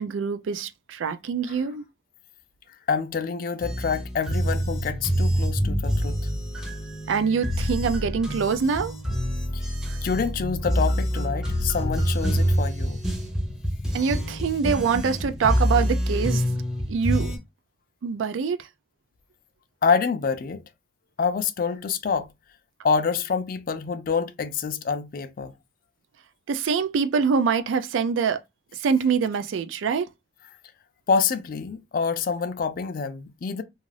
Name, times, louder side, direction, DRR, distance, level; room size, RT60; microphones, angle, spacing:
voice 1, 0.0-1.8 7.1-8.9 9.9-10.0 13.9-16.4 16.9-17.3 18.0-18.6 26.5-28.4 28.7-30.1, right 6 dB, 85° right, 0.4 m, -24 dB
voice 2, 2.9-6.2 9.5-9.7 10.0-13.0 19.8-20.6 21.2-22.3 22.8-25.5 31.1-33.6, left 5 dB, 50° left, 0.3 m, -26 dB
sound 1, 3.6-17.4, equal, 5° right, 0.6 m, -26 dB
2.4 x 2.4 x 3.2 m
head